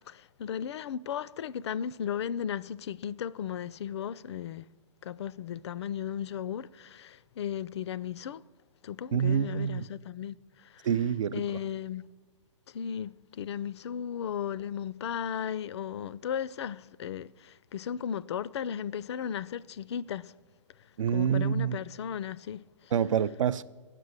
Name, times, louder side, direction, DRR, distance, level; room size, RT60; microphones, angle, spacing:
voice 1, 0.1-4.7 5.0-8.4 8.8-10.9 11.3-12.0 12.7-20.3 21.1-22.9, left 8 dB, 60° left, 0.4 m, -35 dB
voice 2, 9.1-9.8 10.8-11.5 21.0-21.8 22.9-23.6, right 8 dB, 80° right, 0.5 m, -27 dB
10.0 x 7.5 x 9.4 m
hypercardioid pair, 160°, 16 cm